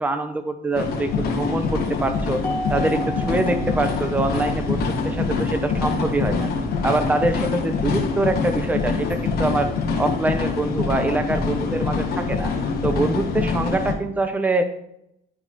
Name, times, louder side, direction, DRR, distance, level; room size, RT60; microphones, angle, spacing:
voice 1, 0.0-2.4 2.7-6.5 6.8-9.7 10.0-12.5 12.8-14.7, right 2 dB, 10° right, 7 dB, 0.6 m, -24 dB
sound 1, 0.7-13.9, left 4 dB, 65° left, 1.3 m, -25 dB
Mallet percussion, 2.4-4.9, right 1 dB, 5° left, 2.0 m, -33 dB
11.0 x 4.1 x 3.0 m, 0.79 s
cardioid pair, 110°, 17 cm